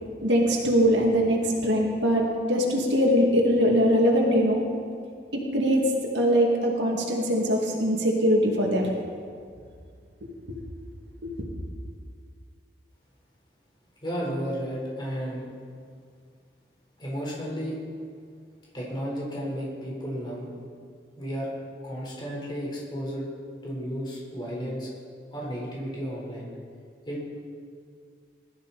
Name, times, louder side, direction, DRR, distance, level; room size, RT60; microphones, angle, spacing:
voice 1, 0.2-4.6 5.5-5.8 6.1-8.9 10.5-10.6 11.2-11.3, equal, 80° right, -1 dB, 2.3 m, -22 dB
voice 2, 14.0-15.5 17.0-17.8 18.7-20.5 21.1-21.5 21.8-23.2 23.6-24.9 25.3-26.5 27.1-27.2, equal, 25° left, -4 dB, 4.3 m, -33 dB
21.0 x 13.5 x 4.2 m, 2.2 s
head